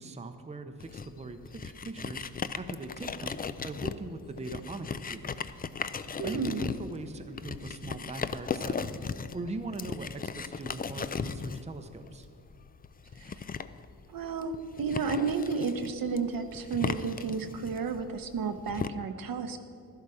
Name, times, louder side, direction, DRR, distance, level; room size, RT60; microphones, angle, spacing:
voice 1, 0.0-3.4 3.6-5.3 6.2-8.9 9.3-12.3, right 2 dB, 15° right, 7 dB, 0.7 m, -40 dB
sound 1, 0.8-18.9, left 5 dB, 25° left, 0.3 m, -37 dB
voice 2, 6.2-6.6 13.2-13.4 14.1-19.6, right 5 dB, 60° right, 8 dB, 0.9 m, -32 dB
12.0 x 11.5 x 4.9 m, 2.5 s
cardioid pair, 105°, 38 cm